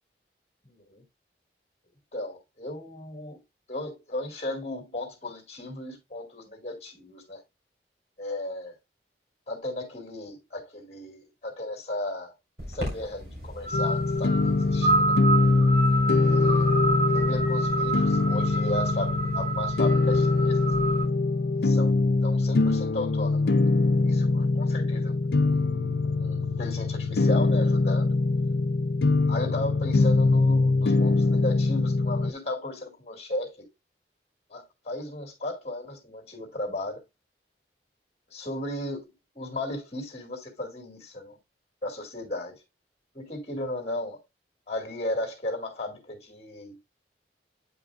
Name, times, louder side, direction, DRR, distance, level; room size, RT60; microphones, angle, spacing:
voice 1, 0.6-1.0 2.1-3.4 3.7-7.4 8.2-8.8 9.5-12.3 12.7-15.2 16.2-16.7 17.1-20.7 21.5-21.9 22.2-23.5 24.0-25.6 26.0-28.2 29.3-33.7 34.5-37.0 38.3-41.4 41.8-42.6 43.1-44.2 44.7-46.8, left 1 dB, 35° left, 2.2 m, -35 dB
sound 1, 12.6-21.0, right 2 dB, 65° right, 3.5 m, -29 dB
sound 2, 13.7-32.3, left 3 dB, 70° left, 0.5 m, -23 dB
8.5 x 5.2 x 2.2 m
head